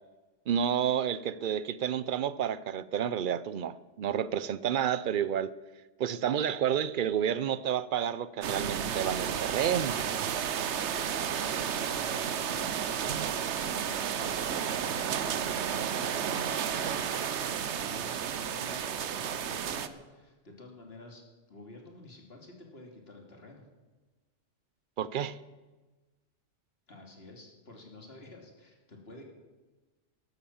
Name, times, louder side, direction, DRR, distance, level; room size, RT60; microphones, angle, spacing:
voice 1, 0.5-5.5 6.0-10.0 25.0-25.4, right 9 dB, 50° right, 0.7 m, -30 dB
sound 1, 8.4-19.9, right 8 dB, 70° right, 1.1 m, -32 dB
voice 2, 11.5-21.2 21.5-23.6 26.9-29.2, left 2 dB, 55° left, 2.8 m, -50 dB
13.5 x 11.5 x 7.2 m
omnidirectional pair, 1.3 m